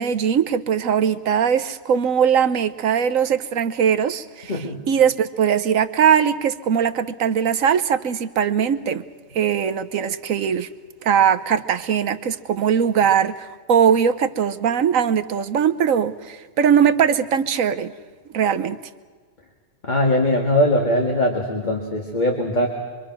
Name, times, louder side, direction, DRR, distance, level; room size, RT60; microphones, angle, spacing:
voice 1, 0.0-9.0 9.3-10.7 11.0-17.9 18.3-18.8, right 8 dB, 70° right, 12 dB, 1.2 m, -20 dB
voice 2, 4.5-4.8 19.8-22.7, left 1 dB, 30° left, 1 dB, 2.0 m, -20 dB
25.0 x 25.0 x 6.0 m, 1.5 s
omnidirectional pair, 1.5 m